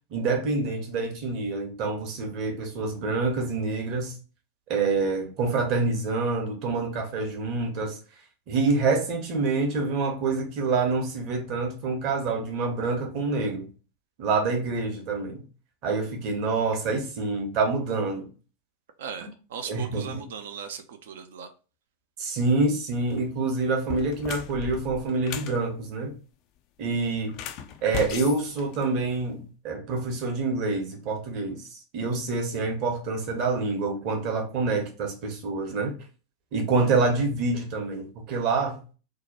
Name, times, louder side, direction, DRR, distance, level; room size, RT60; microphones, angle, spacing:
voice 1, 0.1-4.1 4.7-8.0 8.5-13.7 14.2-15.4 15.8-18.3 19.7-20.2 22.2-26.2 26.8-27.3 27.8-35.9 36.5-38.8, right 3 dB, 40° right, 0.8 m, -27 dB
voice 2, 19.0-21.5, right 7 dB, 60° right, 0.4 m, -38 dB
sound 1, 23.0-23.2 23.8-25.6 27.2-29.3, left 9 dB, 40° left, 0.3 m, -37 dB
2.7 x 2.2 x 4.1 m
figure-of-eight pair, 90°, 0 cm